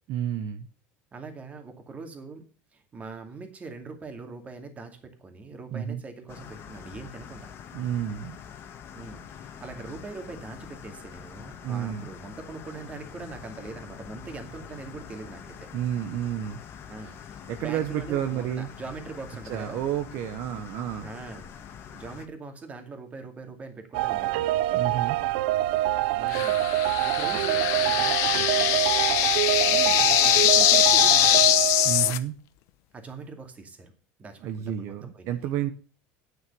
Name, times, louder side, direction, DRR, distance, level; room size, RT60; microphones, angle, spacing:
voice 1, 0.1-0.7 5.7-6.0 7.7-8.4 11.6-12.1 15.7-16.6 17.0-17.1 17.5-18.7 19.5-21.1 24.7-25.2 31.8-32.3 34.4-35.7, right 10 dB, 60° right, 7 dB, 1.0 m, -30 dB
voice 2, 1.1-2.4 2.7-7.5 8.9-15.7 16.9-19.8 21.0-21.5 21.9-24.5 26.1-28.8 29.6-31.6 32.9-33.9 34.2-35.5, right 3 dB, 25° right, 6 dB, 2.4 m, -42 dB
sound 1, 6.3-22.3, left 8 dB, 45° left, 1.6 m, -45 dB
sound 2, 23.9-32.1, right 15 dB, 80° right, 0.5 m, -25 dB
sound 3, 26.3-32.2, left 15 dB, 65° left, 0.8 m, -22 dB
9.4 x 6.5 x 6.9 m, 0.38 s
supercardioid pair, 125°, 6 cm